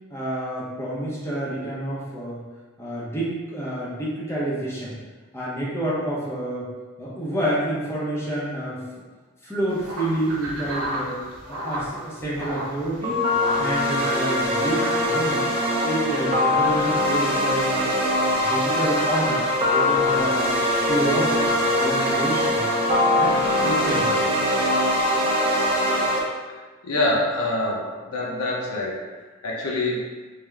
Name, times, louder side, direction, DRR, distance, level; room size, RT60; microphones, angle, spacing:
voice 1, 0.1-2.4 2.8-4.9 5.3-6.7 7.0-8.8 9.4-11.2 11.5-13.2 13.6-15.5 15.8-17.9 18.3-20.5 20.9-22.6 23.1-24.1, right 1 dB, 10° left, -7 dB, 0.8 m, -28 dB
sound 1, 9.7-22.7, equal, 75° right, 1.0 m, -37 dB
sound 2, 13.0-26.2, left 1 dB, 25° right, 0.7 m, -22 dB
voice 2, 26.8-30.2, left 1 dB, 80° left, -2 dB, 0.7 m, -26 dB
3.3 x 2.8 x 3.5 m, 1.3 s
head